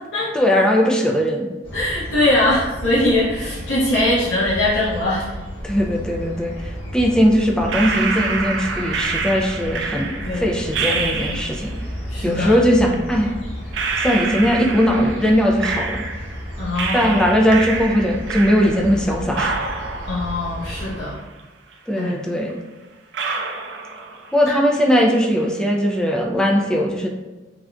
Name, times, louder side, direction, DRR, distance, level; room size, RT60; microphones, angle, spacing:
voice 1, 0.3-1.5 5.6-11.7 12.2-13.3 14.0-16.0 16.9-19.6 21.9-22.5 24.3-27.1, equal, 5° left, -1 dB, 0.3 m, -19 dB
sound 1, 1.6-21.0, equal, 30° left, 1.0 m, -33 dB
voice 2, 1.7-5.3 10.2-10.4 12.1-12.6 16.6-17.1 20.1-21.2 22.0-22.2 24.5-24.6, left 1 dB, 80° left, -10 dB, 0.8 m, -21 dB
sound 2, 7.7-11.8 12.9-13.0 13.7-16.4 16.8-19.0 19.3-21.4 21.7-21.8 22.5-22.6 23.1-24.5 24.7-25.3, right 4 dB, 70° right, 0.4 m, -27 dB
3.5 x 2.4 x 2.2 m, 1.1 s
head